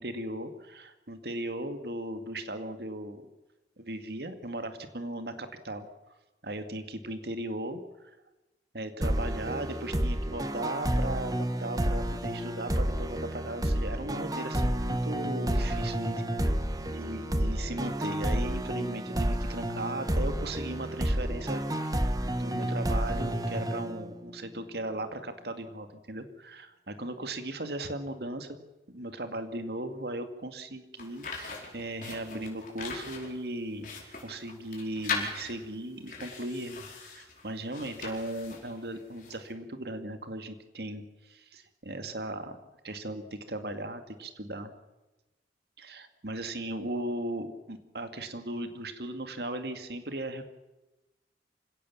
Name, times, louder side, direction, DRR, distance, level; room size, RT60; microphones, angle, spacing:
voice 1, 0.0-3.2 3.8-5.9 6.4-8.2 8.7-16.2 16.8-21.9 22.2-28.6 28.9-33.9 34.2-42.6 42.8-44.7 45.8-50.4, right 1 dB, 65° right, 8 dB, 2.2 m, -37 dB
sound 1, 9.0-24.5, right 1 dB, 20° right, 1.3 m, -30 dB
sound 2, 31.0-39.5, left 4 dB, 50° left, 4.9 m, -40 dB
27.0 x 17.0 x 7.2 m, 1.1 s
head